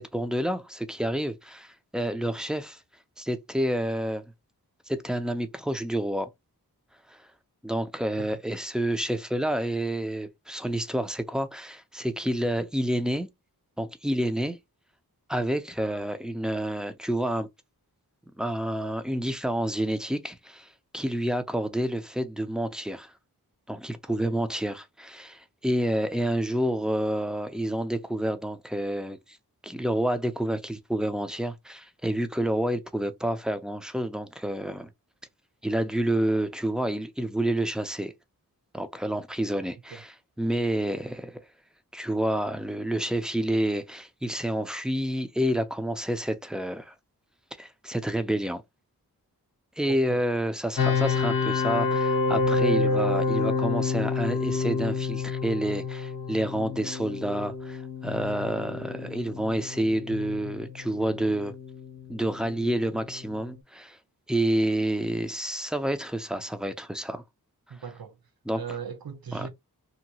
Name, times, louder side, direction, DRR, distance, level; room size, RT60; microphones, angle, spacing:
voice 1, 0.0-2.8 3.2-4.3 4.9-6.3 7.1-7.3 7.6-13.3 13.8-14.6 15.3-17.5 18.4-23.1 23.7-29.4 29.6-34.9 35.6-38.1 38.7-41.4 41.9-46.9 47.6-48.6 49.8-61.5 62.1-64.0 64.3-67.2 68.5-68.6 69.3-69.5, right 1 dB, ahead, 0.4 m, -29 dB
voice 2, 49.9-50.3 67.7-68.2 68.6-69.5, right 6 dB, 70° right, 0.7 m, -38 dB
sound 1, 50.8-63.6, left 4 dB, 65° left, 0.7 m, -29 dB
2.8 x 2.2 x 2.8 m
wide cardioid pair, 55°, 38 cm